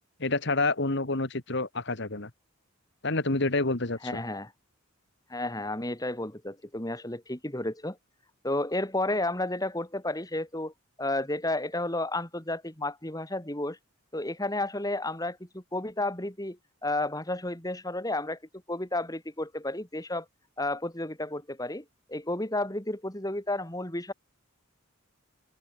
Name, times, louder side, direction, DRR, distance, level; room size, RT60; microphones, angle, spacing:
voice 1, 0.2-2.3 3.0-4.2, left 2 dB, 55° left, 1.9 m, -28 dB
voice 2, 4.0-4.5 5.3-8.0 8.4-10.7 11.0-13.8 14.1-18.4 18.7-20.3 20.6-24.1, left 2 dB, 15° left, 2.9 m, -32 dB
open air
head